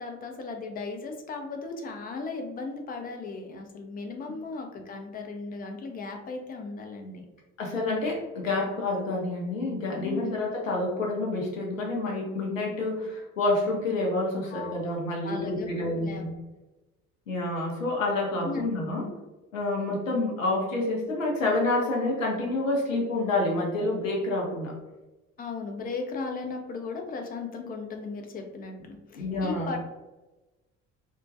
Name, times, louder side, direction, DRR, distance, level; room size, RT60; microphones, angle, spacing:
voice 1, 0.0-7.3 10.0-10.3 14.5-14.7 15.2-16.2 18.4-18.6 19.0-19.1 25.4-29.8, left 4 dB, 25° left, 4 dB, 0.4 m, -36 dB
voice 2, 7.6-16.3 17.3-19.0 19.5-24.7 29.1-29.7, left 2 dB, 85° left, -1 dB, 0.6 m, -28 dB
2.3 x 2.1 x 2.5 m, 1.1 s
figure-of-eight pair, 50°, 38 cm